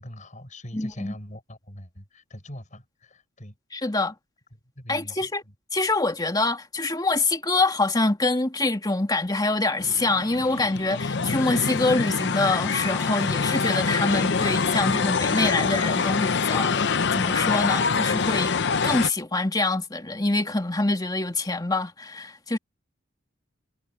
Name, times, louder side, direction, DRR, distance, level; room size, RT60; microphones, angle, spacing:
voice 1, 0.0-3.5 4.8-5.3, left 1 dB, 40° left, 6.9 m, -42 dB
voice 2, 0.7-1.1 3.7-4.1 4.9-5.4 5.7-18.5 18.8-22.6, left 2 dB, 20° left, 2.4 m, -25 dB
sound 1, 9.8-19.1, left 5 dB, 60° left, 0.8 m, -25 dB
head